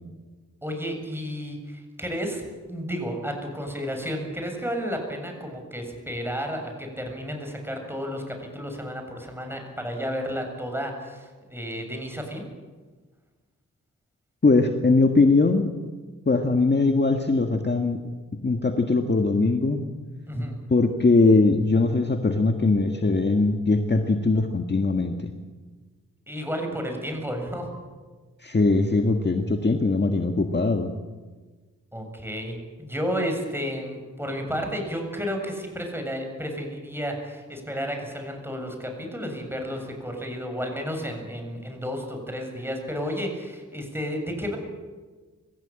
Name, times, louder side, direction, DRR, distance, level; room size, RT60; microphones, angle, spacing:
voice 1, 0.6-12.5 20.3-20.5 26.3-27.7 31.9-44.6, equal, 5° right, 3 dB, 7.4 m, -32 dB
voice 2, 14.4-15.7 16.3-18.0 18.4-19.8 20.7-25.3 28.4-30.9, left 3 dB, 35° left, 5 dB, 1.7 m, -21 dB
25.5 x 16.0 x 9.0 m, 1.4 s
cardioid pair, 75°, 32 cm